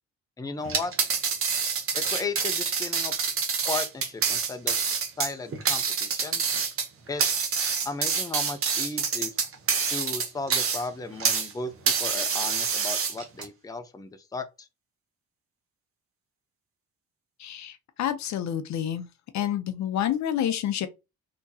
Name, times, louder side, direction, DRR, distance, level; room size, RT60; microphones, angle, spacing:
voice 1, 0.4-1.1 2.0-3.1 3.7-4.8 5.2-6.4 7.1-7.5 7.8-9.3 9.9-11.7 12.0-14.7, left 3 dB, 10° left, 0.6 m, -35 dB
sound 1, 0.6-11.5 11.9-13.4, right 6 dB, 45° right, 0.9 m, -27 dB
voice 2, 17.4-19.1 19.3-20.9, left 10 dB, 65° left, 0.6 m, -28 dB
3.5 x 2.9 x 2.7 m
cardioid pair, 90°, 30 cm